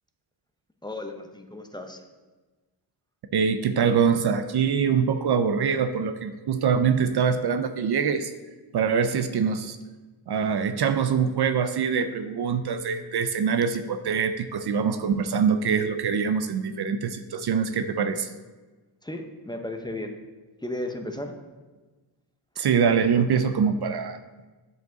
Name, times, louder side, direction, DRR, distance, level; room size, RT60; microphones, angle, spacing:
voice 1, 0.8-2.0 19.0-20.2 20.6-21.3, left 1 dB, 10° left, 4 dB, 0.7 m, -34 dB
voice 2, 3.3-8.3 8.7-9.8 10.3-18.3 22.6-24.2, right 6 dB, 60° right, 10 dB, 0.5 m, -24 dB
7.9 x 5.2 x 3.9 m, 1.2 s
cardioid pair, 70°, 45 cm